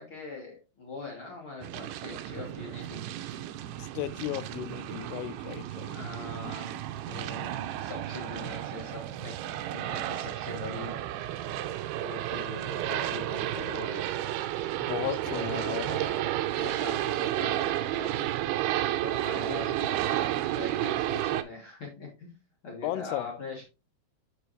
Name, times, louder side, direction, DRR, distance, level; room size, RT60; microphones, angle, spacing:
voice 1, 0.0-3.0 5.9-9.4 9.7-11.0 12.0-14.1 15.0-18.3 19.0-22.4 22.6-23.6, left 2 dB, 50° left, 1.6 m, -42 dB
sound 1, 1.6-21.4, right 13 dB, 85° right, 2.6 m, -32 dB
voice 2, 3.8-6.0 6.4-6.5 13.6-13.7 14.8-15.8 19.5-19.7 22.8-23.3, left 14 dB, 85° left, 2.6 m, -35 dB
8.1 x 5.3 x 3.0 m
omnidirectional pair, 4.5 m